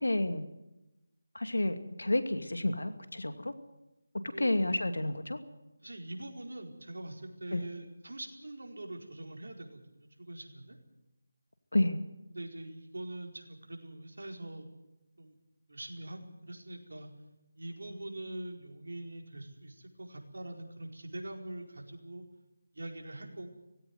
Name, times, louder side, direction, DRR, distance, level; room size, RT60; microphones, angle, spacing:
voice 1, 0.0-0.5 1.3-3.5 4.4-5.4 7.5-7.6 11.7-12.0, left 1 dB, 85° left, 9 dB, 2.4 m, -30 dB
voice 2, 5.8-10.8 12.3-14.7 15.2-15.4 15.7-17.1 17.6-22.3 22.7-23.5, right 1 dB, 75° right, 2 dB, 4.7 m, -43 dB
18.5 x 16.5 x 9.5 m, 0.97 s
figure-of-eight pair, 160°, 0 cm